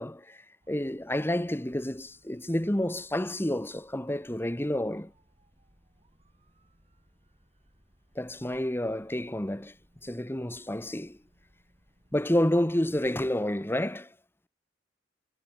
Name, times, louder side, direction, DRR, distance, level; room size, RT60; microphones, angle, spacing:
voice 1, 0.0-5.1 8.1-9.7 10.0-11.2 12.1-14.1, left 1 dB, 10° left, 1.2 m, -29 dB
sound 1, 0.6-13.2, right 1 dB, 35° right, 7.5 m, -65 dB
head